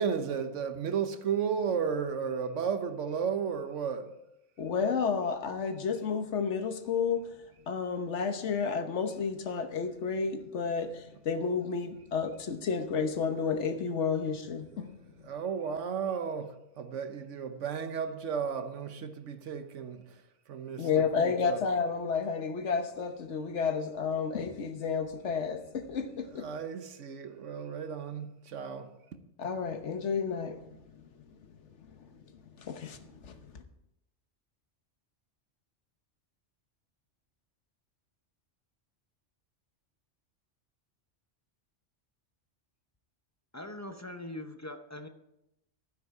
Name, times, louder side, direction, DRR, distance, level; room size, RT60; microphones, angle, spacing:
voice 1, 0.0-4.1 15.3-20.0 20.5-21.6 26.4-28.9, right 6 dB, 80° right, 1.3 m, -33 dB
voice 2, 4.6-7.3 7.7-15.0 20.8-26.5 29.4-31.3 31.9-32.1 32.6-33.6, left 5 dB, 75° left, 1.3 m, -31 dB
voice 3, 43.5-45.1, left 1 dB, 20° left, 0.6 m, -42 dB
12.0 x 9.9 x 4.8 m
omnidirectional pair, 1.2 m